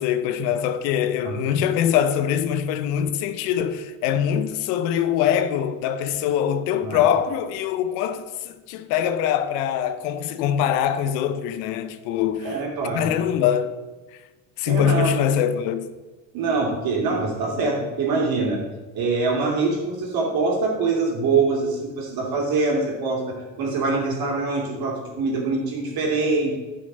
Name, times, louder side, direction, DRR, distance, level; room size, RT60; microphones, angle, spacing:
voice 1, 0.0-12.6 12.9-13.8 14.6-15.9, left 9 dB, 80° left, 0.9 m, -23 dB
voice 2, 12.4-13.1 14.7-15.2 16.3-18.6 18.9-26.6, right 3 dB, 45° right, 2.9 m, -24 dB
10.0 x 5.7 x 5.5 m
supercardioid pair, 120°, 50 cm